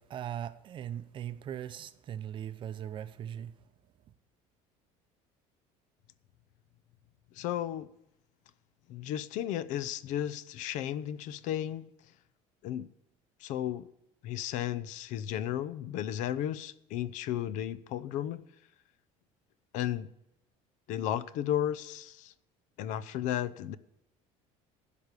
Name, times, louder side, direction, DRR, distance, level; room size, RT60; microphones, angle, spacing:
voice 1, 0.0-3.5, right 10 dB, 35° right, 0.6 m, -39 dB
voice 2, 7.4-7.9 8.9-11.8 12.6-12.9 13.4-13.9 14.2-18.4 19.7-20.1 20.9-22.3 22.8-23.8, left 11 dB, 60° left, 0.6 m, -34 dB
15.0 x 5.2 x 8.2 m
cardioid pair, 155°, 14 cm